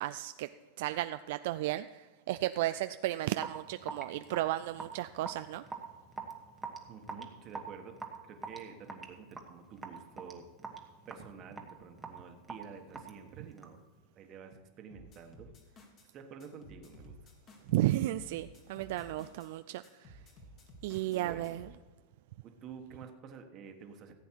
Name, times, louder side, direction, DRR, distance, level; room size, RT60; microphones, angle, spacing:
voice 1, 0.0-0.5 0.8-5.6 17.7-20.2 20.8-21.7, right 15 dB, 60° right, 11 dB, 0.3 m, -34 dB
Raindrop / Drip, 3.4-13.9, right 4 dB, 10° right, 1.2 m, -45 dB
voice 2, 6.9-8.0 8.2-13.8 14.1-17.1 21.1-21.6 22.4-24.1, right 6 dB, 30° right, 5 dB, 1.3 m, -50 dB
sound 1, 14.9-16.1 16.4-19.5 19.8-21.8, equal, 30° left, 1.7 m, -54 dB
15.0 x 8.2 x 4.6 m, 1.3 s
supercardioid pair, 155°, 0 cm